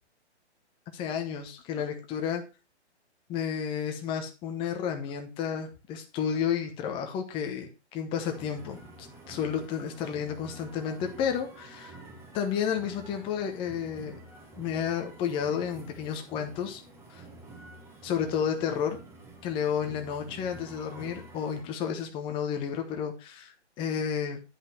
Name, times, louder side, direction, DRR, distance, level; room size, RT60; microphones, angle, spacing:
voice 1, 0.9-2.4 3.3-11.9 12.3-14.2 14.6-16.8 17.1-17.2 18.0-19.0 19.4-24.4, left 8 dB, 15° left, 5 dB, 1.0 m, -31 dB
sound 1, 8.2-21.6, right 2 dB, 5° right, 1.5 m, -49 dB
10.0 x 5.5 x 4.4 m, 0.31 s
hypercardioid pair, 145°, 35 cm